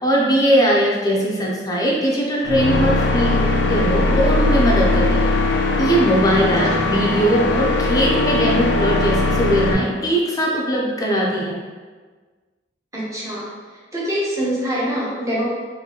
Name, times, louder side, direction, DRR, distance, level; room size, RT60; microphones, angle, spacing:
voice 1, 0.0-5.3 5.8-11.6, equal, 20° left, -3 dB, 0.5 m, -20 dB
sound 1, 2.4-9.7, left 2 dB, 85° left, 0.4 m, -19 dB
voice 2, 12.9-13.5 13.9-15.4, equal, 15° right, -7 dB, 0.9 m, -24 dB
3.9 x 2.6 x 2.8 m, 1.4 s
head